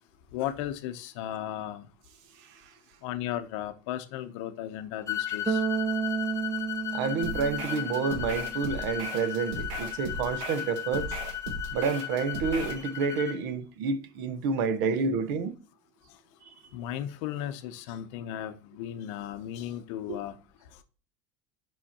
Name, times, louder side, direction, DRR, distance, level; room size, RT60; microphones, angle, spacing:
voice 1, 0.3-1.9 3.0-5.6 11.1-11.2 16.7-20.3, left 11 dB, 65° left, 0.7 m, -35 dB
sound 1, 5.1-13.4, left 11 dB, 20° left, 0.8 m, -35 dB
Bass guitar, 5.5-8.6, right 7 dB, 15° right, 0.5 m, -32 dB
voice 2, 6.9-11.1 11.7-15.6 16.5-16.6, right 5 dB, 60° right, 0.8 m, -29 dB
sound 2, 7.2-12.8, right 2 dB, 85° right, 1.6 m, -38 dB
7.6 x 5.6 x 2.8 m
cardioid pair, 160°, 16 cm